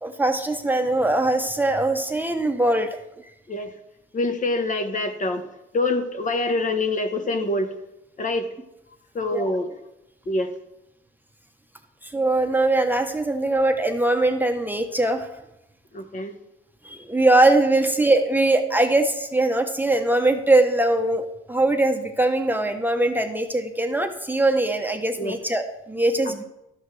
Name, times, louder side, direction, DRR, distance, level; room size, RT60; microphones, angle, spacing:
voice 1, 0.0-2.9 9.3-9.5 12.0-15.3 16.8-26.4, right 2 dB, 10° right, 5 dB, 0.8 m, -21 dB
voice 2, 4.1-5.4 5.7-7.7 8.2-8.5 9.1-9.7 10.3-10.5 15.9-16.3 25.2-25.4, left 2 dB, 40° left, 7 dB, 1.1 m, -25 dB
12.5 x 7.9 x 3.3 m, 0.88 s
cardioid pair, 90°, 20 cm